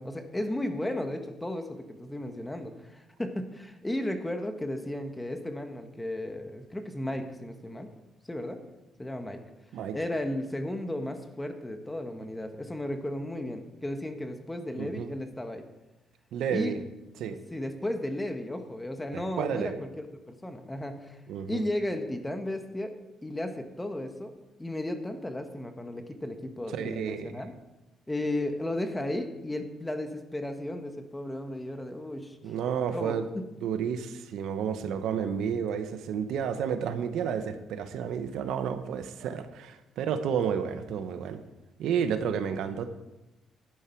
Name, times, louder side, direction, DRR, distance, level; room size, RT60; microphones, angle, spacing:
voice 1, 0.0-7.9 8.3-8.6 9.0-9.4 9.9-15.6 16.5-16.7 17.3-22.9 23.2-24.3 24.6-27.5 28.1-32.4 32.9-33.2, left 1 dB, 10° left, 6 dB, 1.5 m, -34 dB
voice 2, 14.7-15.1 16.3-16.8 17.2-17.4 19.1-19.8 21.3-21.6 26.7-27.3 32.4-33.3 33.6-41.4 41.8-42.9, right 7 dB, 80° right, 9 dB, 1.0 m, -31 dB
12.0 x 9.4 x 4.6 m, 1.0 s
cardioid pair, 90°, 0 cm